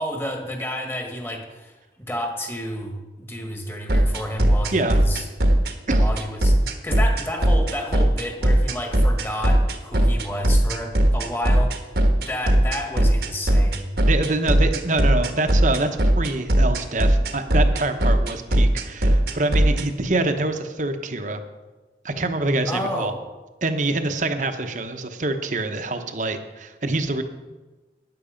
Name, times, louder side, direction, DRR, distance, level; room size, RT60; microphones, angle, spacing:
voice 1, 0.0-5.3 5.9-12.0 12.3-13.9 22.7-23.2, left 1 dB, 15° left, 3 dB, 1.6 m, -31 dB
sound 1, 3.9-19.8, right 1 dB, 65° right, 1.3 m, -18 dB
voice 2, 14.0-15.9 16.2-21.4 22.0-23.1 23.6-27.2, right 2 dB, 45° right, 7 dB, 1.0 m, -25 dB
13.0 x 9.6 x 5.2 m, 1.2 s
head